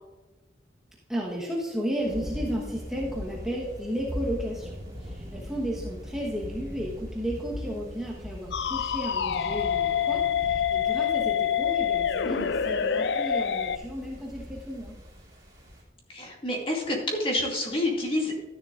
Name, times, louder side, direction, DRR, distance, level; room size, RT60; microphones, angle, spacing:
voice 1, 1.1-15.0, equal, 5° right, -3 dB, 1.1 m, -33 dB
sound 1, 2.0-15.8, left 1 dB, 20° right, 2.7 m, -41 dB
sound 2, 8.5-13.8, left 8 dB, 65° left, 0.4 m, -26 dB
voice 2, 16.1-18.4, left 1 dB, 30° left, -1 dB, 2.2 m, -28 dB
12.5 x 10.5 x 2.5 m, 1.3 s
head